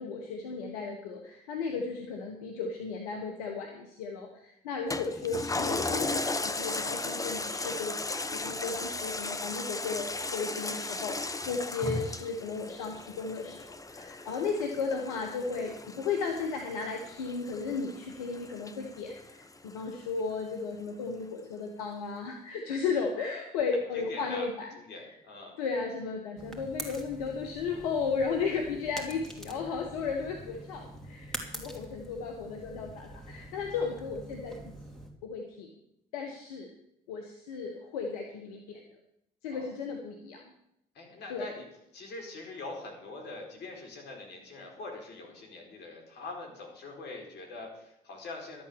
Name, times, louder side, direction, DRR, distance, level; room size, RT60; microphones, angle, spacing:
voice 1, 0.0-25.1 25.6-34.6 35.2-35.7 36.1-36.7 37.1-38.8 39.4-40.5 41.3-41.6, left 5 dB, 90° left, 3 dB, 1.3 m, -35 dB
Toilet flush, 4.9-19.7 20.2-20.3, left 3 dB, 20° left, 1.1 m, -36 dB
voice 2, 23.9-24.5 24.8-25.6 31.6-31.8 39.5-39.7 40.9-41.6 41.9-48.6, left 3 dB, 65° left, 1 dB, 4.5 m, -43 dB
sound 1, 26.4-35.1, right 1 dB, ahead, 2.9 m, -45 dB
12.5 x 8.6 x 7.0 m, 0.80 s
hypercardioid pair, 60°, 19 cm